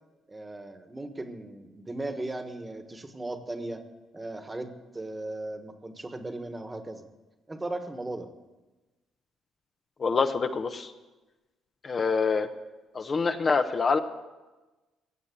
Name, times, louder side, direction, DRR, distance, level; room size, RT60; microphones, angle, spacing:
voice 1, 0.3-3.8 4.1-7.0 7.5-8.3, right 2 dB, 20° right, 8 dB, 1.4 m, -37 dB
voice 2, 10.0-10.9 11.8-12.5 12.9-14.0, left 4 dB, 40° left, 7 dB, 0.9 m, -25 dB
17.0 x 7.3 x 8.6 m, 1.2 s
cardioid pair, 85°, 0 cm